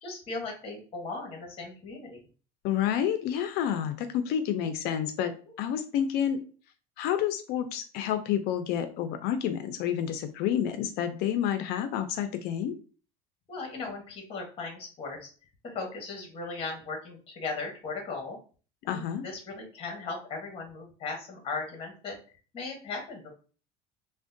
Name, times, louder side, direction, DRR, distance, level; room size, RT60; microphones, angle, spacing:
voice 1, 0.0-2.2 13.5-15.3 15.6-18.4 18.8-22.2 22.5-23.3, left 3 dB, 30° left, 2 dB, 1.0 m, -37 dB
voice 2, 2.6-5.3 5.6-6.4 7.0-12.8 18.9-19.2, left 9 dB, 60° left, 9 dB, 0.4 m, -29 dB
3.4 x 2.1 x 2.5 m, 0.38 s
cardioid pair, 125°, 18 cm